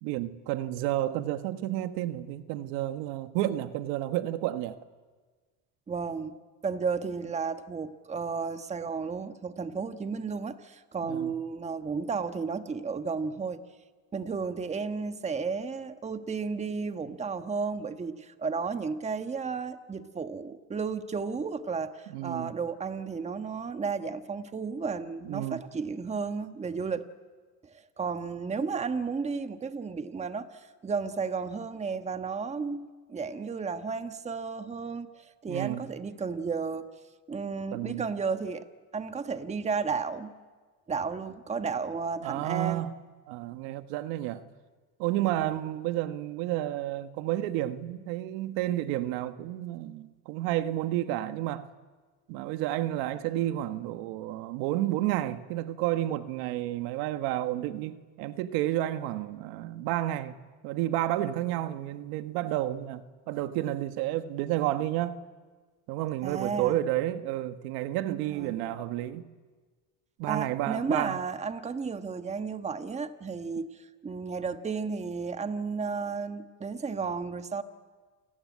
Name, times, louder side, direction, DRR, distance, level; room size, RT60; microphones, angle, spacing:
voice 1, 0.0-4.8 11.0-11.3 22.1-22.5 25.2-25.6 35.5-35.9 37.7-38.1 42.2-43.0 43.3-44.5 45.0-51.7 52.3-60.4 60.6-65.2 65.9-69.2 70.2-71.2, right 14 dB, 70° right, 1.6 m, -31 dB
voice 2, 5.9-6.3 6.6-13.6 14.1-27.1 27.6-36.9 37.3-38.7 38.9-40.3 40.9-42.9 45.3-45.6 66.2-66.8 68.3-68.7 70.3-77.6, right 5 dB, 15° right, 1.3 m, -33 dB
28.5 x 20.0 x 9.7 m
supercardioid pair, 115°, 38 cm